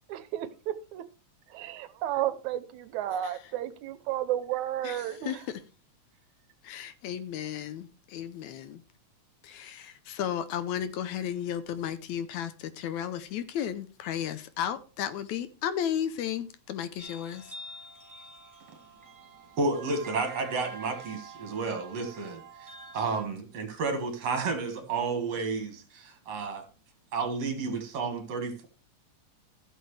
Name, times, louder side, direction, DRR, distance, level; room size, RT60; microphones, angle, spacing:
voice 1, 0.1-0.5 1.0-1.1 1.5-5.4, right 12 dB, 80° right, 2.0 m, -32 dB
voice 2, 4.8-5.6 6.6-8.8 9.4-17.5, left 9 dB, 75° left, 2.0 m, -34 dB
sound 1, 17.0-23.2, right 3 dB, 10° right, 1.2 m, -46 dB
voice 3, 19.6-26.6 27.1-28.7, right 4 dB, 60° right, 2.8 m, -31 dB
15.5 x 6.5 x 3.3 m
omnidirectional pair, 3.4 m